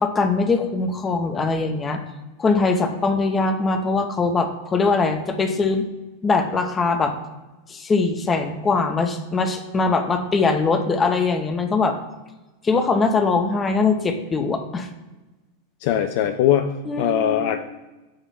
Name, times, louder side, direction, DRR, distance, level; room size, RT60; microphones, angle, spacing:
voice 1, 0.0-2.0 2.4-5.8 6.2-7.1 7.7-11.9 12.6-14.9 16.9-17.5, left 4 dB, 20° left, 6 dB, 0.8 m, -21 dB
voice 2, 15.8-17.6, left 10 dB, 50° left, 7 dB, 0.4 m, -21 dB
8.8 x 3.0 x 5.6 m, 1.1 s
figure-of-eight pair, 90°, 0 cm